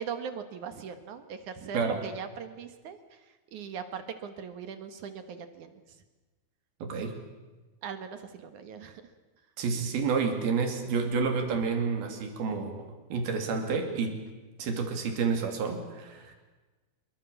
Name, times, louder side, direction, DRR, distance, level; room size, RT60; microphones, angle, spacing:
voice 1, 0.0-6.0 7.8-9.0, right 7 dB, 60° right, 9 dB, 2.7 m, -40 dB
voice 2, 6.8-7.2 9.6-14.2 14.6-16.3, right 5 dB, 85° right, 5 dB, 4.8 m, -29 dB
25.5 x 23.5 x 7.1 m, 1.2 s
omnidirectional pair, 4.3 m